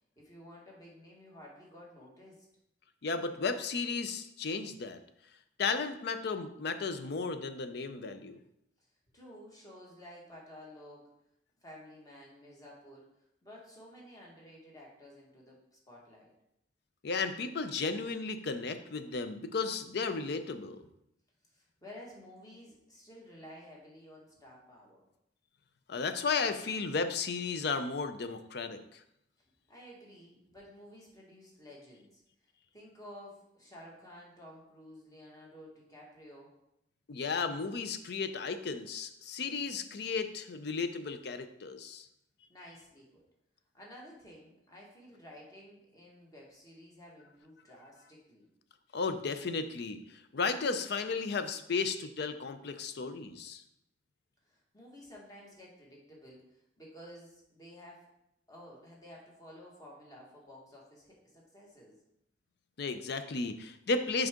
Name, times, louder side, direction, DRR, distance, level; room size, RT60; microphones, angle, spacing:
voice 1, 0.1-2.5 8.8-8.9 9.1-11.1 11.6-16.3 21.4-25.1 29.4-36.5 42.5-43.2 43.7-48.5 54.4-58.0 58.5-62.0, equal, 20° left, -3 dB, 1.6 m, -53 dB
voice 2, 3.0-5.0 5.6-8.4 17.0-20.8 25.9-29.0 37.1-42.1 48.9-53.6 62.8-64.3, left 4 dB, 65° left, 10 dB, 0.5 m, -34 dB
6.2 x 4.8 x 3.7 m, 0.80 s
head